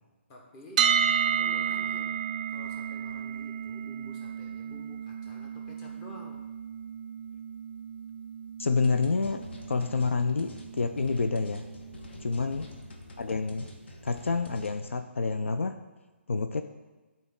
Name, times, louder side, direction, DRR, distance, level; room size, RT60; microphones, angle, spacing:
voice 1, 0.3-6.4 12.2-12.7, left 1 dB, 25° left, 0 dB, 1.1 m, -51 dB
sound 1, 0.8-12.7, right 8 dB, 35° right, 0.4 m, -33 dB
voice 2, 8.6-11.7 12.2-12.7 13.2-13.7 14.0-15.8 16.3-16.6, left 4 dB, 75° left, 8 dB, 0.4 m, -28 dB
sound 2, 8.8-14.8, left 2 dB, 60° left, 1.1 m, -47 dB
10.0 x 4.1 x 3.6 m, 1.2 s
figure-of-eight pair, 145°, 7 cm